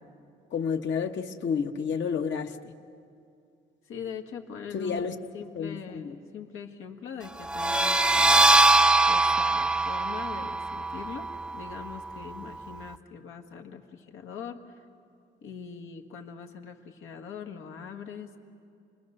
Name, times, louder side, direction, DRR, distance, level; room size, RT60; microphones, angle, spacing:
voice 1, 0.5-2.7 4.7-5.1 5.5-6.1, left 6 dB, 65° left, 5 dB, 1.3 m, -30 dB
voice 2, 3.8-14.9 15.4-18.4, left 7 dB, 85° left, 4 dB, 1.7 m, -42 dB
sound 1, 7.4-12.9, right 2 dB, 5° right, 0.5 m, -23 dB
29.0 x 21.0 x 6.6 m, 2.5 s
cardioid pair, 90°, 20 cm